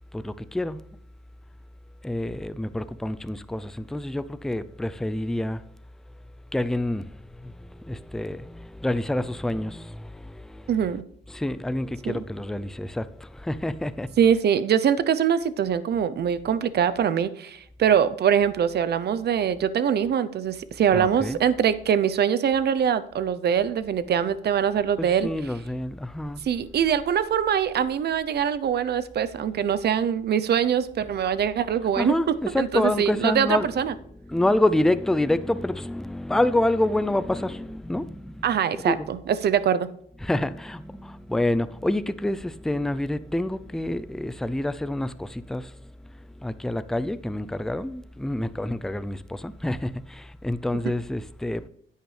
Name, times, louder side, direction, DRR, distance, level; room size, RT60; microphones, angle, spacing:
voice 1, 0.1-0.8 2.0-5.6 6.5-10.7 11.3-14.2 20.9-21.4 25.0-26.4 31.8-33.7 34.2-39.1 40.2-45.8 46.4-51.7, left 1 dB, ahead, 0.4 m, -27 dB
voice 2, 10.7-11.0 12.1-12.2 14.2-25.3 26.5-32.1 32.6-33.9 38.4-39.9, right 8 dB, 55° right, 0.7 m, -23 dB
10.5 x 8.9 x 3.3 m
cardioid pair, 90°, 20 cm